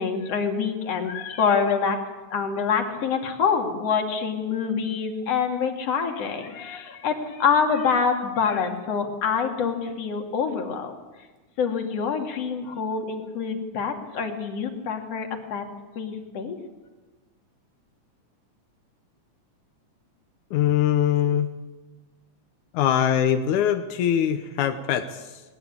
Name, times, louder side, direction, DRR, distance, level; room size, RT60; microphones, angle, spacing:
voice 1, 0.0-2.0 2.3-11.0 11.6-15.6 16.0-16.6, left 6 dB, 55° left, 4 dB, 3.4 m, -26 dB
voice 2, 20.5-21.5 22.7-25.4, left 10 dB, 85° left, 8 dB, 2.4 m, -22 dB
20.0 x 20.0 x 8.7 m, 1.2 s
omnidirectional pair, 3.3 m